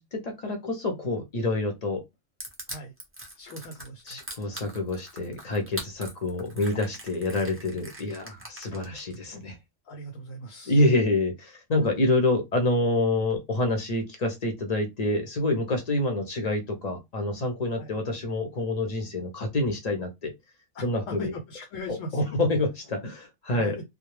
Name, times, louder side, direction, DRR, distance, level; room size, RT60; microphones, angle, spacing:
voice 1, 0.0-2.0 4.1-9.6 10.7-20.3 20.8-21.3 21.9-23.8, left 2 dB, 45° left, 0.6 m, -27 dB
Crushing, 2.4-9.1, right 1 dB, 15° right, 0.5 m, -41 dB
voice 2, 3.4-4.2 9.8-10.8 17.8-17.9 20.7-22.2 23.5-23.8, left 1 dB, 85° left, 1.0 m, -39 dB
2.2 x 2.1 x 3.1 m
omnidirectional pair, 1.3 m